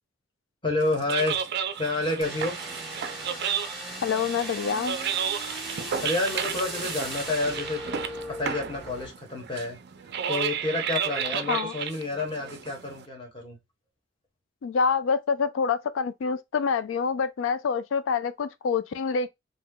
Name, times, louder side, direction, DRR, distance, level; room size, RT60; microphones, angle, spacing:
voice 1, 0.6-1.4 1.8-2.6 6.0-7.8 8.3-9.8 10.3-13.6, left 2 dB, 25° left, 1.1 m, -29 dB
sound 1, 0.8-13.0, right 8 dB, 60° right, 0.4 m, -33 dB
sound 2, 2.2-9.1, equal, ahead, 1.0 m, -38 dB
voice 2, 4.0-5.0 11.5-11.7 14.6-19.3, left 5 dB, 85° left, 0.4 m, -26 dB
2.7 x 2.2 x 3.7 m
head